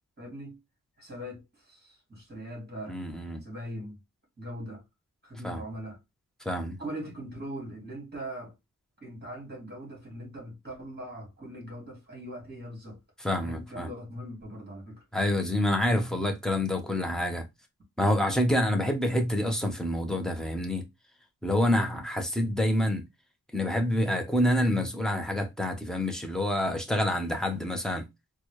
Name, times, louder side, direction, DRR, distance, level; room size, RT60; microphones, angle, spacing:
voice 1, 0.2-0.6 1.0-3.0 3.4-4.0 4.4-4.8 5.2-6.0 6.8-8.5 9.0-13.0 13.4-15.0, equal, 25° right, 2.3 m, -40 dB
voice 2, 2.9-3.4 5.4-5.6 6.4-6.8 13.2-13.9 15.1-17.5 18.0-20.8 21.4-23.0 23.5-28.0, left 1 dB, ahead, 0.8 m, -27 dB
4.0 x 2.3 x 3.1 m
wide cardioid pair, 105°, 36 cm